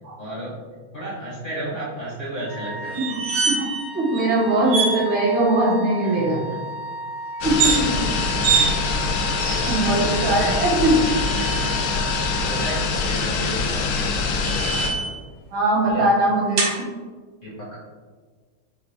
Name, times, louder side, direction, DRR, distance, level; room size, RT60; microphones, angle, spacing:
voice 1, 0.2-0.5 0.9-3.0 6.0-6.6 7.6-9.9 11.4-11.7 12.5-14.5 15.8-16.0 17.4-17.8, right 1 dB, 45° left, -8 dB, 0.6 m, -34 dB
Wind instrument woodwind instrument, 2.4-13.2, right 2 dB, 50° right, 1.1 m, -34 dB
sound 1, 2.9-3.9 4.1-4.3 4.7-5.0 7.4-7.8 8.4-8.7 9.4-10.0 10.9-11.7 13.6-15.2 16.6-16.8, right 5 dB, 90° right, 1.6 m, -25 dB
voice 2, 3.9-6.4 7.4-7.9 9.6-11.0 15.5-16.9, right 1 dB, 70° right, -6 dB, 2.1 m, -20 dB
sound 2, 7.4-14.9, left 4 dB, 75° left, 1.4 m, -24 dB
5.6 x 2.3 x 3.3 m, 1.5 s
omnidirectional pair, 2.3 m